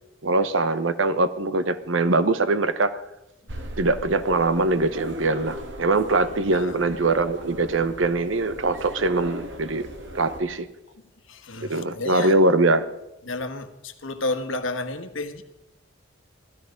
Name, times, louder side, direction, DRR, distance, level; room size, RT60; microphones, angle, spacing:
voice 1, 0.2-3.0 3.8-9.9 10.1-10.7 11.7-12.9, right 2 dB, 80° right, 0.9 m, -22 dB
sound 1, 3.5-10.4, equal, 65° right, 1.9 m, -37 dB
voice 2, 11.3-12.3 13.2-15.4, left 2 dB, 90° left, 1.3 m, -31 dB
16.0 x 13.0 x 5.2 m
head